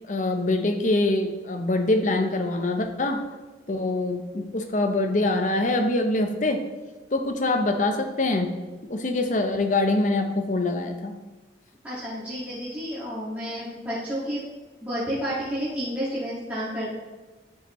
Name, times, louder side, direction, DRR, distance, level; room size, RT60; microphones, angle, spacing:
voice 1, 0.1-3.2 3.7-6.6 7.1-8.6 8.9-11.2, left 2 dB, 40° left, 6 dB, 0.6 m, -24 dB
voice 2, 11.8-14.4 14.8-16.9, equal, 10° right, -10 dB, 1.8 m, -30 dB
11.0 x 5.5 x 3.1 m, 1.2 s
head